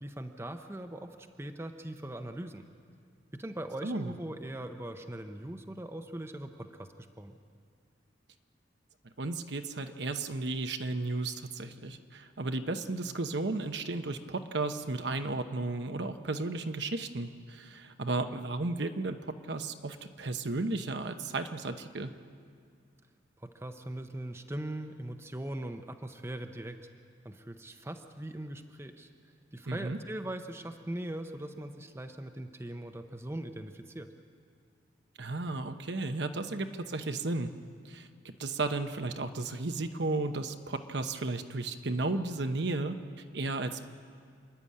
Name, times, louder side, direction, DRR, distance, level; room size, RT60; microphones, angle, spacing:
voice 1, 0.0-2.6 3.3-7.4 23.4-26.9 27.2-29.1 29.5-34.1, right 1 dB, 15° right, 6 dB, 0.7 m, -40 dB
voice 2, 3.8-4.1 9.2-19.2 19.5-22.1 29.7-30.0 35.2-37.5 37.8-38.1 38.4-43.8, right 2 dB, 60° right, 7 dB, 0.9 m, -34 dB
28.0 x 11.0 x 8.6 m, 2.1 s
head